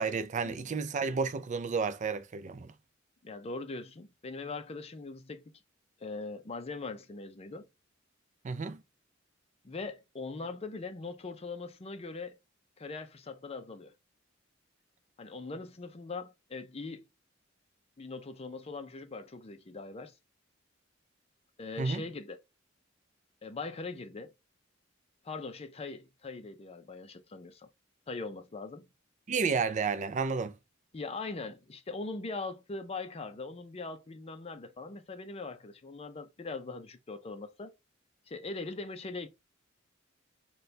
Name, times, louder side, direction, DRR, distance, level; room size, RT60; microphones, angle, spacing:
voice 1, 0.0-2.7 8.4-8.8 21.8-22.0 29.3-30.5, right 5 dB, 40° right, 0.4 m, -31 dB
voice 2, 3.2-5.6 6.0-7.7 9.6-12.4 12.8-13.9 15.2-17.1 18.0-20.1 21.6-22.4 23.4-24.3 25.2-27.7 28.1-28.9 30.9-37.7 38.3-39.3, left 3 dB, 30° left, 0.5 m, -41 dB
4.2 x 2.3 x 3.2 m
head